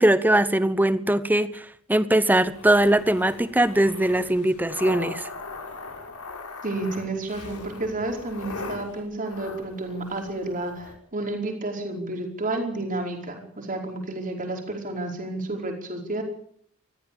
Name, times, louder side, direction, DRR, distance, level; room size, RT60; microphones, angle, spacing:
voice 1, 0.0-1.6 1.9-5.2, right 1 dB, 10° right, 14 dB, 1.0 m, -21 dB
sound 1, 2.5-11.0, left 3 dB, 80° left, 5.2 m, -40 dB
voice 2, 6.6-16.2, right 2 dB, 40° right, 2 dB, 5.0 m, -31 dB
21.5 x 15.0 x 8.8 m, 0.67 s
head